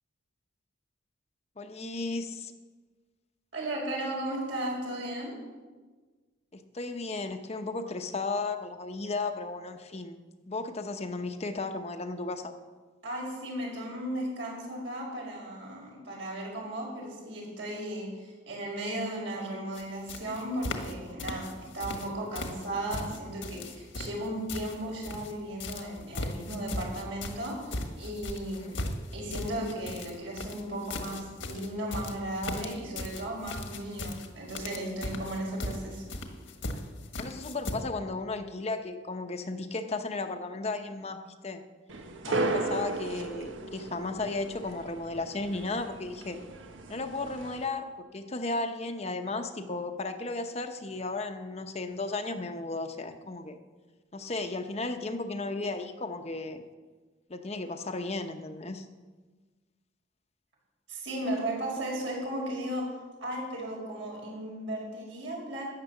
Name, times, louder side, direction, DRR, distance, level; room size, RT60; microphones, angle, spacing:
voice 1, 1.6-2.5 6.5-10.2 10.5-12.5 28.5-28.7 37.2-41.6 42.3-46.4 46.9-47.9 48.1-53.6 54.1-56.6 57.3-58.9, left 3 dB, 35° left, 6 dB, 0.8 m, -34 dB
voice 2, 3.5-5.3 13.0-28.8 29.1-36.0 60.9-62.9 63.2-65.6, right 1 dB, 70° right, -2 dB, 5.4 m, -35 dB
sound 1, 19.7-19.8 20.1-20.9 21.2-22.1 22.3-25.3 25.6-37.7, left 2 dB, 75° left, 1.6 m, -38 dB
sound 2, 41.9-47.6, right 3 dB, 90° right, 1.3 m, -35 dB
13.5 x 9.5 x 7.1 m, 1.3 s
head